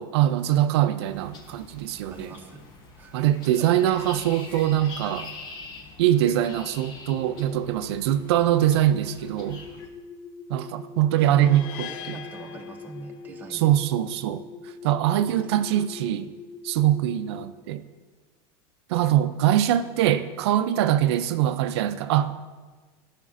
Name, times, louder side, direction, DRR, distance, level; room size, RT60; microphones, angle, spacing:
voice 1, 0.0-2.3 3.1-5.3 6.0-9.6 10.5-12.2 13.5-14.4 14.8-16.3 16.6-17.8 18.9-22.3, right 12 dB, 85° right, 10 dB, 0.4 m, -23 dB
sound 1, 1.0-9.9, left 3 dB, 30° left, 0.8 m, -44 dB
voice 2, 2.1-2.7 3.0-3.2 3.5-3.8 11.2-13.8 15.1-16.1, right 3 dB, 15° right, 2 dB, 0.6 m, -43 dB
sound 2, 7.0-17.5, left 5 dB, 85° left, 1.2 m, -43 dB
sound 3, 11.4-13.6, left 10 dB, 50° left, 0.5 m, -41 dB
12.0 x 5.7 x 2.5 m, 1.4 s
supercardioid pair, 160°, 13 cm